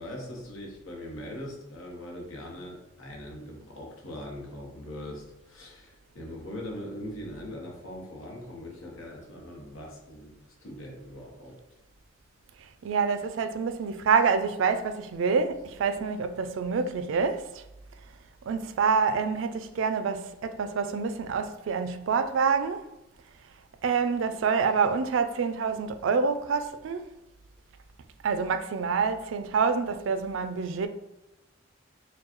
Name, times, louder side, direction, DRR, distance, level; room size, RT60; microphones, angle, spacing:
voice 1, 0.0-10.3 10.6-11.6, left 1 dB, 85° left, 1.0 m, -41 dB
voice 2, 12.8-17.6 18.5-22.8 23.8-27.1 28.2-30.9, right 5 dB, 70° right, 0.3 m, -27 dB
4.5 x 2.3 x 3.0 m
head